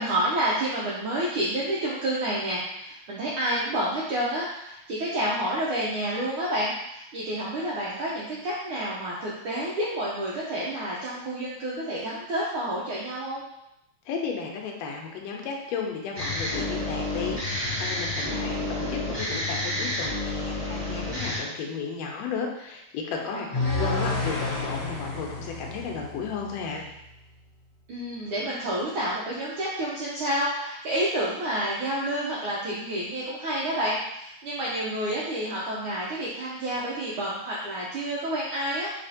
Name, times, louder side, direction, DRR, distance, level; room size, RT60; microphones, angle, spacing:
voice 1, 0.0-13.4 23.3-23.9 27.9-38.9, right 1 dB, 90° right, -6 dB, 1.1 m, -29 dB
voice 2, 14.1-26.8, left 5 dB, 75° left, 1 dB, 1.8 m, -34 dB
sound 1, 16.1-21.4, left 1 dB, 20° right, 0.6 m, -30 dB
sound 2, 23.5-26.7, left 3 dB, 55° left, 1.5 m, -30 dB
4.2 x 4.1 x 2.8 m, 0.81 s
omnidirectional pair, 3.3 m